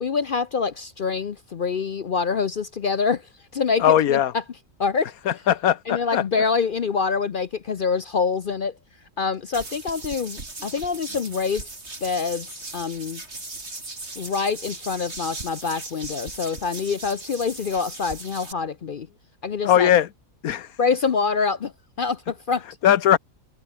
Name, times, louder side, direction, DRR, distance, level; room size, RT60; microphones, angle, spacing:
voice 1, 0.0-3.2 3.5-3.8 4.1-4.4 4.8-5.1 5.9-8.7 9.2-11.7 12.0-13.2 14.2-19.1 19.4-19.9 20.8-21.7 22.0-22.6, left 5 dB, 50° left, 0.7 m, -25 dB
voice 2, 3.8-4.3 5.3-6.2 19.6-20.1 20.4-20.8 22.8-23.2, left 10 dB, 80° left, 1.4 m, -19 dB
sound 1, 9.5-18.5, right 2 dB, 50° right, 4.4 m, -38 dB
omnidirectional pair, 1.5 m